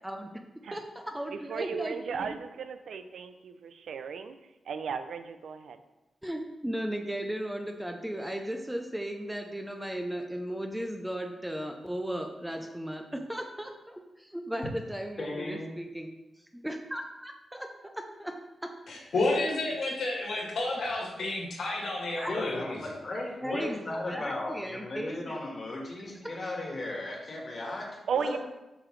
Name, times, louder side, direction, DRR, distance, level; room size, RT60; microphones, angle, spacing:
voice 1, 0.7-2.3 6.2-16.1 16.6-17.9 18.2-18.3 18.6-18.7 19.3-19.5 19.9-20.0 22.2-22.3 23.4-25.4, equal, 5° right, 3 dB, 0.5 m, -36 dB
voice 2, 1.3-4.4 4.7-5.8 28.1-28.4, right 6 dB, 75° right, 9 dB, 0.4 m, -35 dB
voice 3, 15.2-15.7 22.3-27.9 28.1-28.4, left 2 dB, 40° left, -1 dB, 1.6 m, -36 dB
voice 4, 18.9-22.8, left 2 dB, 75° left, -3 dB, 2.0 m, -30 dB
7.5 x 4.9 x 3.2 m, 1.0 s
wide cardioid pair, 150°, 0 cm